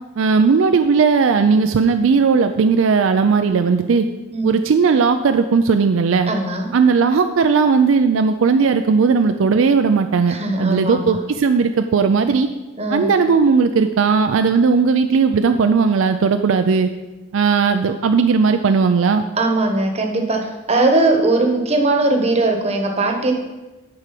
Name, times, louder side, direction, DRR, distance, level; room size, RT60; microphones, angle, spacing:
voice 1, 0.2-4.1 4.4-6.3 6.7-12.5 12.9-16.9 17.3-19.2, right 5 dB, 65° right, 8 dB, 0.4 m, -16 dB
voice 2, 6.2-6.7 10.3-11.2 12.8-13.1 19.4-23.3, right 2 dB, 30° right, 2 dB, 1.1 m, -19 dB
9.7 x 4.8 x 5.9 m, 1.1 s
head